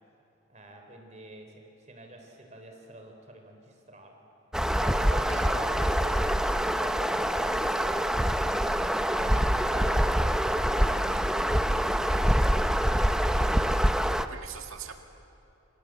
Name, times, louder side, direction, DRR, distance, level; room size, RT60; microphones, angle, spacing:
voice 1, 0.5-4.2 4.8-6.3 6.7-8.4 9.0-13.5, right 1 dB, 35° right, 3 dB, 3.9 m, -46 dB
sound 1, 4.5-14.3, equal, 5° right, 0.7 m, -25 dB
voice 2, 5.0-5.5 14.3-14.9, right 7 dB, 90° right, 4 dB, 2.0 m, -42 dB
28.0 x 27.0 x 7.9 m, 2.8 s
head